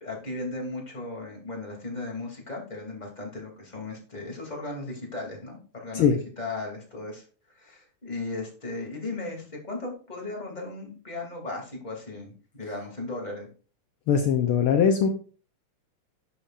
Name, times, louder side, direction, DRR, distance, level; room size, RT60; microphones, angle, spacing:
voice 1, 0.0-7.2 7.5-13.5, left 2 dB, 15° left, -1 dB, 2.9 m, -36 dB
voice 2, 14.1-15.1, left 7 dB, 70° left, 5 dB, 1.3 m, -21 dB
11.0 x 8.7 x 2.6 m, 0.39 s
omnidirectional pair, 3.5 m